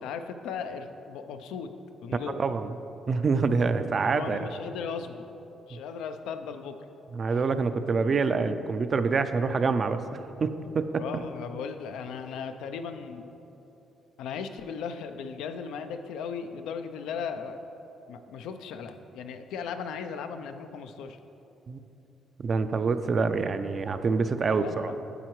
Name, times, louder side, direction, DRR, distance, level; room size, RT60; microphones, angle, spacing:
voice 1, 0.0-1.7 2.0-2.4 4.1-5.3 5.7-6.8 11.0-13.3 14.2-17.6 18.1-21.2 24.6-25.0, left 6 dB, 90° left, 8 dB, 0.4 m, -37 dB
voice 2, 2.1-2.8 3.1-4.5 7.1-11.2 21.7-21.8 22.4-24.9, right 4 dB, 45° right, 10 dB, 0.4 m, -26 dB
10.0 x 7.6 x 3.1 m, 3.0 s
cardioid pair, 90°, 0 cm